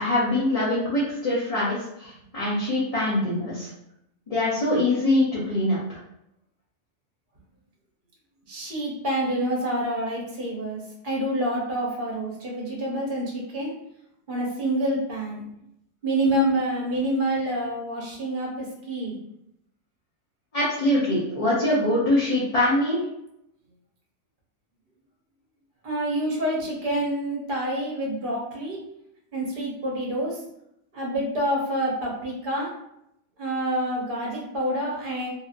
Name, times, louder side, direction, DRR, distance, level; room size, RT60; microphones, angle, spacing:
voice 1, 0.0-3.7 4.3-6.0 20.5-23.0, left 1 dB, 35° left, -8 dB, 0.6 m, -23 dB
voice 2, 8.5-13.7 14.3-15.4 16.0-19.2 25.8-28.8 29.3-30.4 30.9-32.7 33.4-35.3, right 1 dB, 45° right, -3 dB, 1.0 m, -27 dB
2.7 x 2.7 x 2.5 m, 0.78 s
omnidirectional pair, 1.3 m